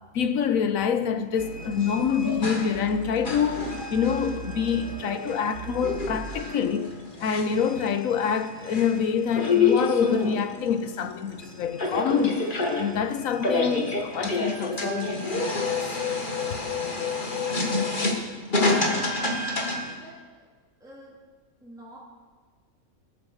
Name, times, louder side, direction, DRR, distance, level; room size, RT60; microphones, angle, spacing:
voice 1, 0.1-6.9 7.2-12.4 12.7-15.9, left 7 dB, 70° left, 1.2 m, -26 dB
sound 1, 1.4-19.9, left 3 dB, 35° left, 1.8 m, -29 dB
sound 2, 1.4-2.1 2.7-5.0 5.5-6.4, right 8 dB, 55° right, 1.0 m, -40 dB
voice 2, 18.3-18.9 19.9-20.5 20.8-21.1 21.6-22.0, equal, ahead, 2.8 m, -48 dB
20.5 x 7.3 x 6.5 m
omnidirectional pair, 1.5 m